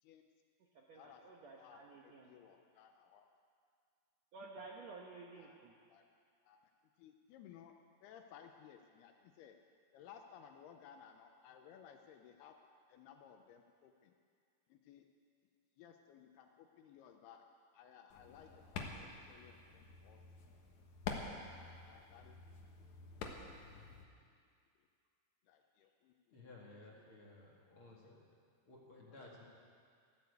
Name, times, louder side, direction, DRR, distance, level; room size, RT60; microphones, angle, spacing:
voice 1, 0.7-2.3 4.3-5.7, right 3 dB, 80° right, -1 dB, 1.5 m, -53 dB
voice 2, 1.6-3.2 5.4-5.6 5.9-6.0 6.4-6.6 7.0-7.8 8.0-9.6 9.9-12.6 12.9-14.1 14.7-15.1 15.8-17.4 17.7-20.2 21.5-22.4 25.5-26.4 28.0-28.1, left 8 dB, 80° left, 5 dB, 2.6 m, -59 dB
sound 1, 18.1-24.0, left 5 dB, 65° left, 2.0 m, -48 dB
voice 3, 26.3-28.2 28.7-29.4, left 2 dB, 45° left, -4 dB, 2.0 m, -57 dB
14.0 x 11.5 x 8.2 m, 2.2 s
omnidirectional pair, 4.8 m